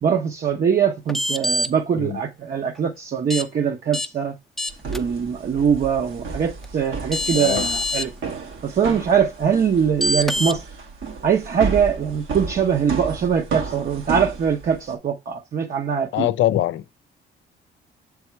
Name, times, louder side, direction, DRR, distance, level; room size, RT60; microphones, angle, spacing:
voice 1, 0.0-4.3 4.9-8.1 8.6-10.6 11.2-16.3, right 7 dB, 45° right, 0.9 m, -22 dB
sound 1, 1.1-1.7 3.3-3.4 3.9-4.1 4.6-5.0 6.6-6.7 7.1-8.0 10.0-10.5, left 1 dB, ahead, 0.6 m, -24 dB
sound 2, 4.7-14.9, right 4 dB, 80° right, 1.6 m, -32 dB
voice 2, 7.3-7.6 16.1-16.8, left 13 dB, 75° left, 0.5 m, -22 dB
7.0 x 3.5 x 4.5 m
cardioid pair, 90°, 20 cm